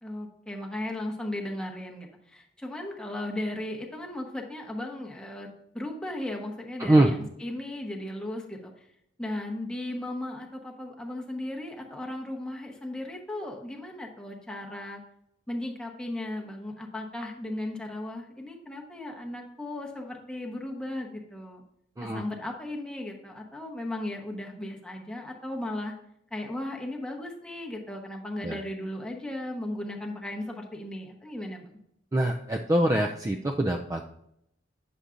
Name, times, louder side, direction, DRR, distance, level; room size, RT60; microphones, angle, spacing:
voice 1, 0.0-5.5 5.7-8.9 9.2-15.0 15.5-21.6 22.0-25.9 26.3-31.7, left 1 dB, 5° left, 0 dB, 1.0 m, -36 dB
voice 2, 32.1-34.2, right 1 dB, 15° right, 2 dB, 0.4 m, -24 dB
9.6 x 6.8 x 2.5 m, 0.74 s
head